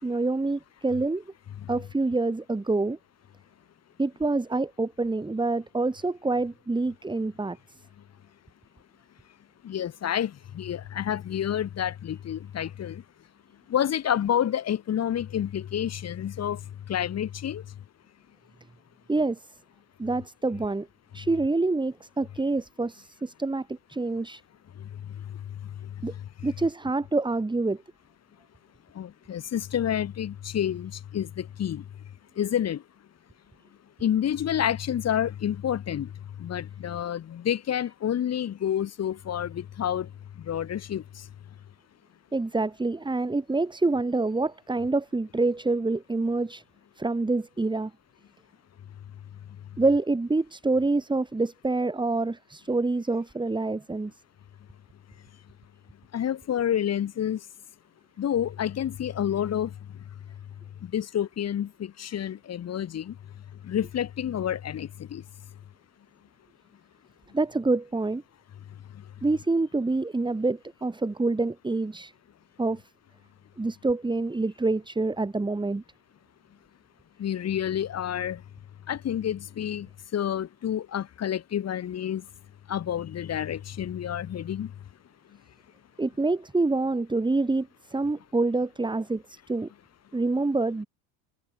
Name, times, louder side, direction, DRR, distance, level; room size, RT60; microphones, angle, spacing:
voice 1, 0.0-1.2 1.7-3.0 4.0-7.6 19.1-19.5 20.0-20.9 21.1-24.4 26.0-26.1 26.4-27.8 42.3-46.6 47.0-47.9 49.8-54.1 67.3-68.2 69.2-72.1 72.6-72.8 73.6-75.8 86.0-89.7 90.1-90.9, right 3 dB, 10° right, 4.9 m, -26 dB
voice 2, 9.6-13.0 13.7-16.6 16.9-17.6 29.0-31.8 32.4-32.8 34.0-36.1 36.4-40.1 40.5-41.0 56.1-57.4 58.2-59.7 60.9-63.1 63.6-65.2 77.2-78.4 78.9-79.9 80.1-82.2 82.7-84.7, left 10 dB, 35° left, 3.0 m, -29 dB
supercardioid pair, 125°, 45 cm